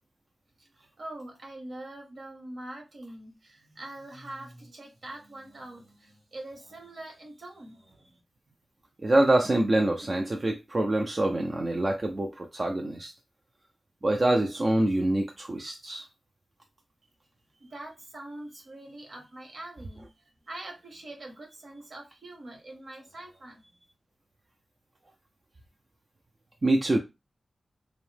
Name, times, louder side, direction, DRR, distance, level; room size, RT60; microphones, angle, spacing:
voice 1, 1.0-8.2 17.5-23.8, right 1 dB, 60° right, 0.9 m, -44 dB
voice 2, 9.0-13.1 14.0-16.1 26.6-27.0, right 1 dB, 35° right, 0.3 m, -25 dB
2.7 x 2.0 x 3.2 m
wide cardioid pair, 105°, 0 cm